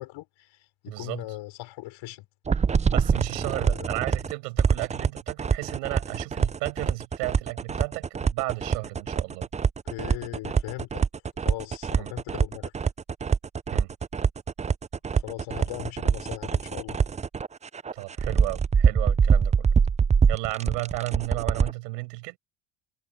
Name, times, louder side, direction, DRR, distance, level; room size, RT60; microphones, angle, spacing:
voice 1, 0.0-2.2 3.6-3.9 9.8-11.0 11.4-12.7 15.1-17.0, left 18 dB, 70° left, 4.7 m, -39 dB
voice 2, 0.9-1.2 2.8-9.5 11.9-12.1 13.7-13.9 17.9-19.7 20.3-22.4, right 26 dB, 90° right, 7.1 m, -33 dB
sound 1, 2.5-4.3 4.6-21.7, right 6 dB, 15° right, 0.4 m, -24 dB
supercardioid pair, 75°, 47 cm